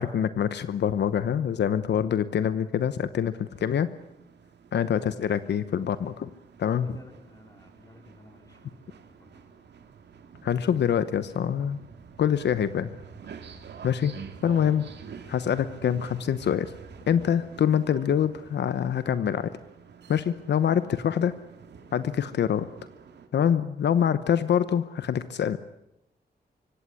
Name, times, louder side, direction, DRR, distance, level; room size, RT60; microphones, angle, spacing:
voice 1, 0.0-3.9 4.7-6.3 6.6-7.0 10.4-11.8 12.2-12.9 13.8-14.1 14.4-14.9 15.3-16.7 17.1-19.5 20.1-21.3 21.9-22.7 23.3-25.6, left 8 dB, 90° left, 13 dB, 1.0 m, -25 dB
sound 1, 3.3-23.3, right 6 dB, 85° right, 2.3 m, -48 dB
voice 2, 6.8-9.5 14.9-15.0, left 2 dB, 20° left, 5 dB, 4.3 m, -53 dB
24.5 x 16.5 x 9.8 m, 0.87 s
wide cardioid pair, 95°, 17 cm